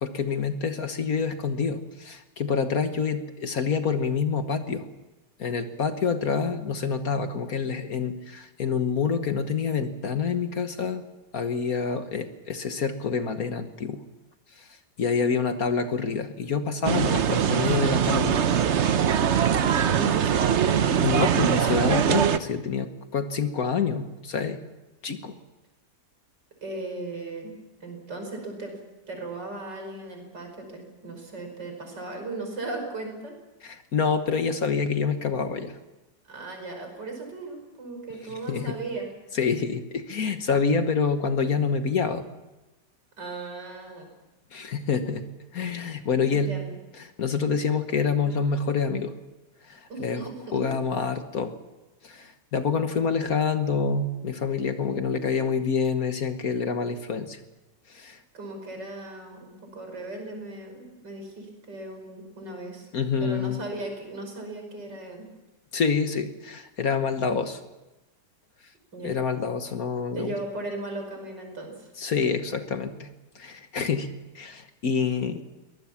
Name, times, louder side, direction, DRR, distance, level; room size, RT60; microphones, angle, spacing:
voice 1, 0.0-4.8 5.4-11.0 11.3-14.0 15.0-18.4 21.0-24.6 25.0-25.3 33.6-35.8 38.5-38.8 39.3-42.2 44.5-45.2 45.5-46.5 47.0-49.1 49.7-50.2 50.5-51.5 52.0-57.4 57.9-58.2 62.9-63.6 65.7-67.6 69.0-70.3 72.0-73.1 73.3-74.1 74.3-75.4, left 5 dB, 55° left, 8 dB, 1.6 m, -27 dB
sound 1, 16.8-22.4, right 8 dB, 50° right, 0.9 m, -22 dB
voice 2, 19.7-21.1 26.6-27.5 27.8-28.8 29.1-33.3 36.3-39.1 43.2-44.1 46.3-46.7 49.9-50.6 58.3-62.9 63.2-65.3 68.9-69.2 70.1-71.9, right 2 dB, 70° right, 3 dB, 6.0 m, -37 dB
23.5 x 19.0 x 7.2 m, 1.1 s
omnidirectional pair, 2.0 m